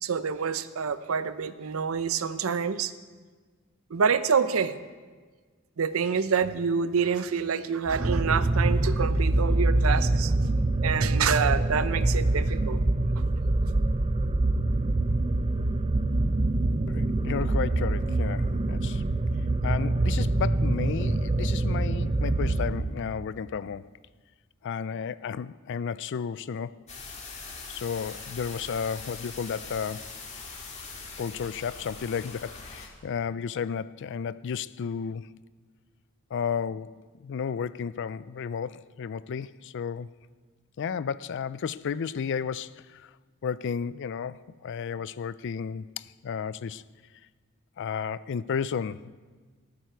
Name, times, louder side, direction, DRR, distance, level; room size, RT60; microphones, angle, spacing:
voice 1, 0.0-2.9 3.9-4.8 5.8-10.3 10.8-12.8, right 6 dB, 80° right, 0.6 m, -27 dB
sound 1, 7.9-23.2, right 2 dB, 30° right, 0.5 m, -25 dB
voice 2, 16.9-19.0 19.6-23.9 24.6-26.8 27.7-30.1 31.2-35.4 36.3-40.1 40.8-43.1 43.4-46.8 47.8-49.1, left 6 dB, 60° left, 0.4 m, -33 dB
sound 2, 26.9-32.9, left 4 dB, 35° left, 1.9 m, -42 dB
18.5 x 9.1 x 4.6 m
head